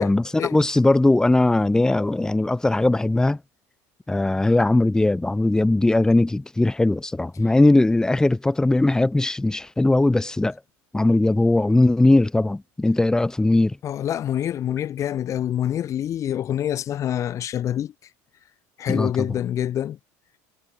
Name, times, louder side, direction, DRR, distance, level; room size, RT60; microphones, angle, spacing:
voice 1, 0.0-3.4 4.1-10.6 10.9-13.8 18.9-19.3, left 2 dB, 10° left, 4.3 m, -19 dB
voice 2, 13.8-17.9 18.8-20.0, left 10 dB, 45° left, 5.5 m, -26 dB
supercardioid pair, 110°, 8 cm